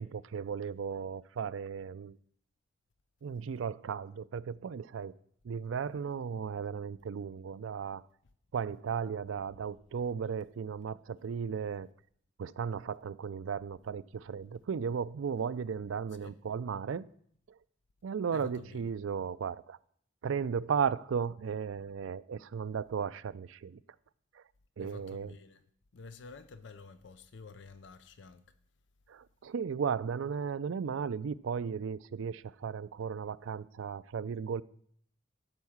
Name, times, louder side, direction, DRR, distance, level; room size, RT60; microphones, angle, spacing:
voice 1, 0.0-2.2 3.2-5.1 5.4-8.0 8.5-11.9 12.4-17.0 18.0-19.8 20.2-23.8 24.4-24.5 24.8-25.3 29.1-34.6, right 6 dB, 80° right, 0.4 m, -35 dB
voice 2, 18.3-18.9 24.8-25.6 25.9-28.5, left 4 dB, 60° left, 0.5 m, -50 dB
12.5 x 4.7 x 7.1 m
head